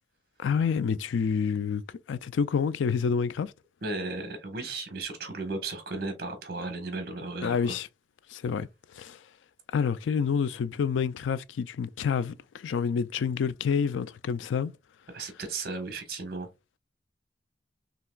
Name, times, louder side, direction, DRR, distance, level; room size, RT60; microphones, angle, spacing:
voice 1, 0.4-1.8 2.1-3.5 7.4-7.9 8.3-8.7 8.9-9.2 9.7-14.7, left 6 dB, 90° left, 0.4 m, -28 dB
voice 2, 3.8-7.8 15.1-16.5, right 3 dB, 55° right, 1.3 m, -35 dB
5.7 x 2.9 x 2.3 m
head